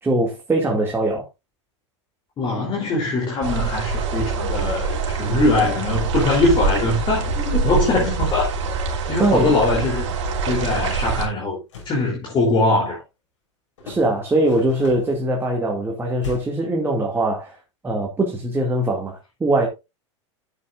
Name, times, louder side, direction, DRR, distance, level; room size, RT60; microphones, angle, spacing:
voice 1, 0.0-1.3 9.2-9.6 13.8-17.6 17.8-19.7, right 1 dB, 15° right, 2.4 m, -21 dB
voice 2, 2.4-8.5 9.1-10.1 10.5-11.6 11.9-13.0, left 2 dB, 30° left, 3.5 m, -21 dB
sound 1, 3.4-11.3, right 4 dB, 65° right, 3.0 m, -24 dB
sound 2, 11.5-12.0 13.8-15.2 16.2-16.7, left 3 dB, 80° left, 5.5 m, -38 dB
11.5 x 7.9 x 2.5 m
hypercardioid pair, 100°, 16 cm